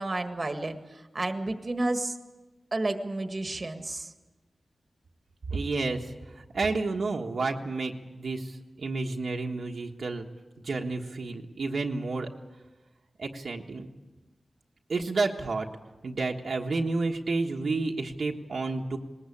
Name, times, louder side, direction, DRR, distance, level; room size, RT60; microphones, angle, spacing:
voice 1, 0.0-2.2 2.7-4.1, right 2 dB, 30° right, 7 dB, 1.7 m, -31 dB
voice 2, 5.5-6.1 6.3-10.2 10.6-12.3 13.2-13.9 14.9-15.7 16.0-19.0, right 3 dB, 65° right, 1 dB, 1.4 m, -30 dB
20.5 x 19.5 x 8.6 m, 1.1 s
wide cardioid pair, 125°, 0 cm